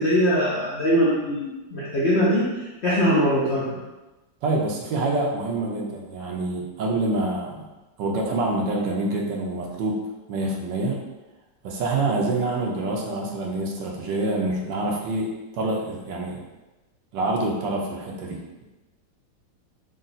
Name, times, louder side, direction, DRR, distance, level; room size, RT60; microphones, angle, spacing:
voice 1, 0.0-3.8, equal, 65° left, -8 dB, 0.6 m, -22 dB
voice 2, 4.4-7.7 8.0-10.0 10.3-11.0 11.6-16.4 17.1-18.6, right 2 dB, 75° right, -1 dB, 1.3 m, -26 dB
3.8 x 2.2 x 4.0 m, 1.1 s
omnidirectional pair, 2.1 m